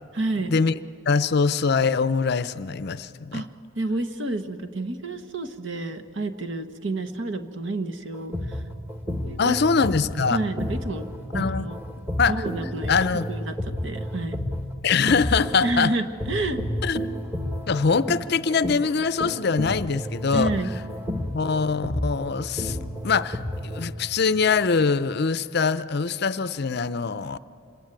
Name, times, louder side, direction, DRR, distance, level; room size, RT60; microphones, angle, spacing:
voice 1, 0.1-0.5 3.3-3.5 3.8-8.6 9.2-9.6 10.2-11.8 12.3-12.9 13.3-14.4 15.6-16.6 20.3-20.7, right 2 dB, 60° right, 9 dB, 1.2 m, -29 dB
voice 2, 1.1-3.4 9.4-10.4 11.3-11.7 12.2-12.4 12.9-13.3 14.8-15.9 16.8-17.0 17.7-20.5 21.3-22.8 23.0-27.4, left 5 dB, 50° left, 14 dB, 0.5 m, -23 dB
sound 1, 8.1-15.8 16.2-23.8, left 1 dB, 10° right, 1.4 m, -31 dB
26.5 x 20.5 x 9.0 m, 2.6 s
head